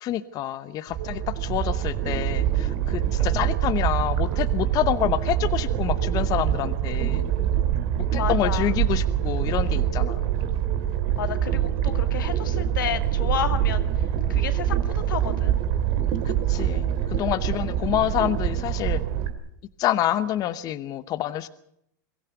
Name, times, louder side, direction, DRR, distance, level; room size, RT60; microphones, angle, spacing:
voice 1, 0.0-7.3 8.1-10.2 16.2-19.0 19.8-21.5, left 12 dB, 35° left, 13 dB, 0.9 m, -27 dB
sound 1, 0.9-19.3, right 10 dB, 50° right, 2.4 m, -25 dB
sound 2, 1.0-10.9, right 5 dB, 65° right, 2.2 m, -43 dB
voice 2, 8.2-8.7 11.2-13.9 14.3-15.6, left 9 dB, 90° left, 9 dB, 2.1 m, -31 dB
23.0 x 15.0 x 8.1 m, 0.75 s
supercardioid pair, 130°, 10 cm